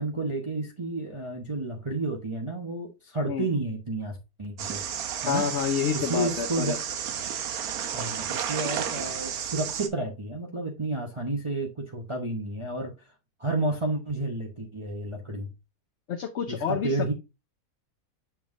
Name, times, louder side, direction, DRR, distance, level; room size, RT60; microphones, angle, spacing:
voice 1, 0.0-4.8 5.2-5.5 5.9-6.8 7.9-12.9 13.4-15.5 16.5-17.1, right 2 dB, 25° right, 0.8 m, -31 dB
sound 1, 4.6-9.9, right 8 dB, 85° right, 1.3 m, -32 dB
voice 2, 5.2-6.8 16.1-17.1, left 7 dB, 55° left, 1.0 m, -28 dB
7.1 x 5.8 x 2.5 m
omnidirectional pair, 1.5 m